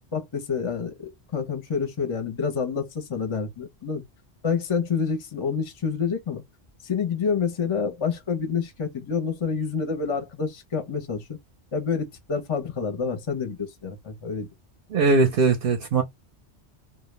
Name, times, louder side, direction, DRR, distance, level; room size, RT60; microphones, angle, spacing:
voice 1, 0.1-4.0 4.4-6.4 6.8-11.4 11.7-14.5, left 6 dB, 35° left, 0.5 m, -28 dB
voice 2, 14.9-16.0, right 3 dB, 65° right, 0.7 m, -20 dB
2.2 x 2.0 x 3.0 m
omnidirectional pair, 1.1 m